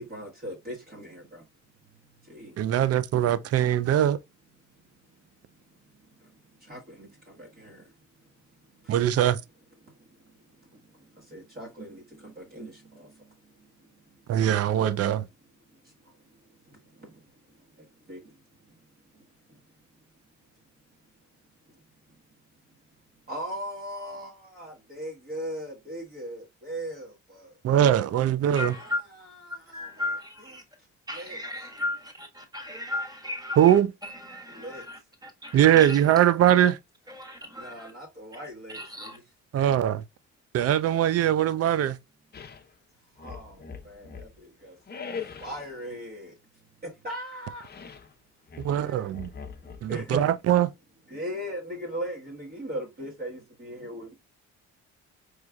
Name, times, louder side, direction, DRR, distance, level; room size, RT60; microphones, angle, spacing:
voice 1, 0.0-1.4 2.3-2.5 6.7-7.1 7.4-7.8 11.3-13.1 17.0-17.1 18.1-18.2 23.3-27.5 28.7-30.1 31.1-31.4 34.5-34.8 37.6-39.2 43.2-44.7 45.4-46.3 46.8-47.7 48.7-48.9 49.9-50.3 51.1-54.1, equal, 30° right, 1.3 m, -38 dB
voice 2, 2.6-4.2 8.9-9.4 14.3-15.3 27.6-28.7 33.6-33.9 35.5-36.8 39.5-40.0 40.5-42.0 48.6-49.3 49.8-50.7, right 11 dB, 55° right, 0.5 m, -21 dB
voice 3, 28.5-29.0 29.7-30.6 31.1-36.2 37.1-37.9 38.4-38.5 38.7-39.2, left 2 dB, 15° right, 1.4 m, -36 dB
sound 1, 42.3-42.7 43.2-44.4 44.9-45.7 47.6-48.1 48.5-50.0, left 6 dB, 35° left, 0.7 m, -41 dB
4.7 x 3.1 x 2.3 m
cardioid pair, 90°, 30 cm